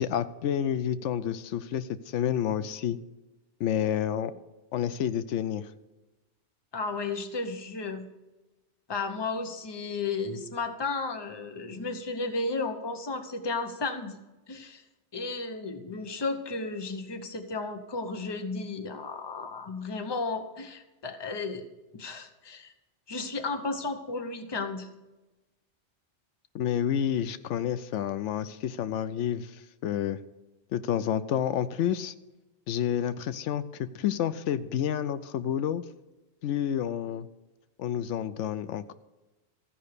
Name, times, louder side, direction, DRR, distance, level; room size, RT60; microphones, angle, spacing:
voice 1, 0.0-3.0 3.6-4.3 4.7-5.7 26.5-30.2 30.7-32.1 32.7-35.8 36.4-37.3 37.8-38.9, left 9 dB, 85° left, 13 dB, 0.9 m, -29 dB
voice 2, 6.7-8.1 8.9-14.2 14.5-14.8 15.1-21.7 21.9-22.7 23.1-24.9, left 3 dB, 25° left, 7 dB, 0.8 m, -33 dB
14.0 x 5.4 x 6.6 m, 1.1 s
omnidirectional pair, 1.2 m